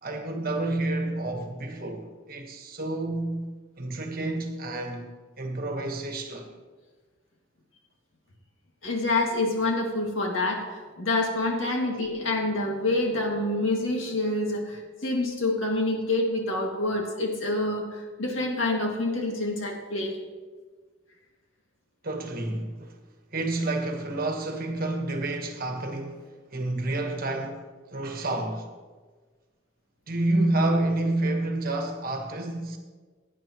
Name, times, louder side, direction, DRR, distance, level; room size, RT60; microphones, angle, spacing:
voice 1, 0.0-3.5 3.8-5.1 5.4-6.5 11.8-11.9 22.0-23.0 23.3-26.2 26.5-27.6 27.9-28.7 30.1-32.8, right 2 dB, 45° right, 1.3 m, -29 dB
voice 2, 8.8-20.2, left 2 dB, 75° left, 2.2 m, -27 dB
17.5 x 9.6 x 3.1 m
head